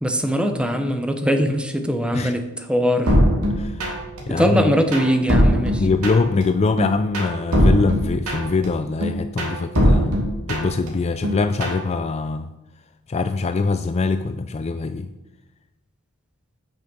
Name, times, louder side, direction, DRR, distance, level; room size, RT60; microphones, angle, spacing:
voice 1, 0.0-3.2 4.3-5.8, equal, 5° right, 6 dB, 0.8 m, -21 dB
sound 1, 3.1-4.2 4.5-6.4 6.8-8.7 9.0-10.9 11.2-11.8, equal, 80° right, 2.3 m, -20 dB
voice 2, 3.5-3.9 4.3-4.7 5.8-12.5 13.1-15.1, left 4 dB, 30° left, 10 dB, 0.3 m, -23 dB
8.9 x 6.2 x 6.0 m, 0.98 s
head